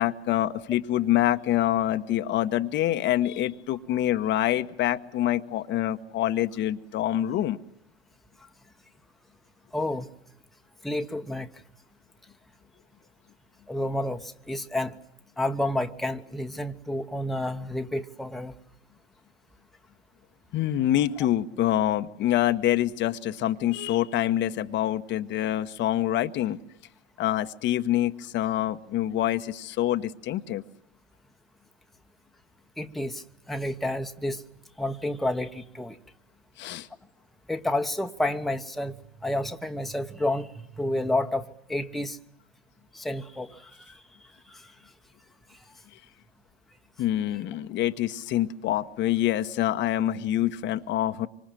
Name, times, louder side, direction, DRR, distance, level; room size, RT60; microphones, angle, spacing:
voice 1, 0.0-7.6 20.5-26.6 27.2-30.6 36.6-36.9 47.0-51.3, left 13 dB, 35° left, 9 dB, 1.1 m, -26 dB
voice 2, 9.7-10.1 10.8-11.5 13.7-14.9 15.4-18.5 32.8-34.4 34.8-36.0 37.5-38.9 39.2-42.2 42.9-44.0 44.5-44.7, left 1 dB, ahead, 6 dB, 1.1 m, -30 dB
26.0 x 25.5 x 7.6 m, 0.81 s
figure-of-eight pair, 90°, 33 cm